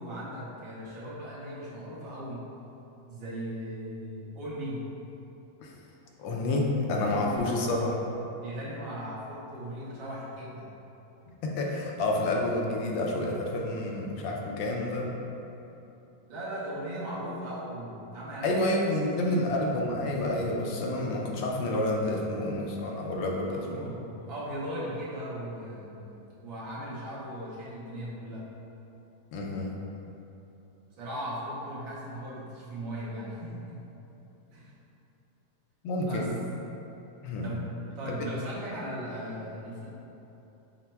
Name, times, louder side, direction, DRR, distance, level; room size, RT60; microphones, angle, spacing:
voice 1, 0.0-2.5 3.1-4.9 7.1-7.5 8.4-10.7 16.3-18.5 19.2-19.5 23.4-28.5 31.0-33.8 34.5-34.7 36.0-36.3 37.4-39.9, equal, 70° right, -8 dB, 1.8 m, -38 dB
voice 2, 6.2-7.9 11.4-15.1 18.4-23.9 29.3-29.7 35.8-36.3 37.2-37.5, left 1 dB, 75° left, -1 dB, 1.2 m, -29 dB
5.6 x 2.1 x 4.4 m, 3.0 s
omnidirectional pair, 2.2 m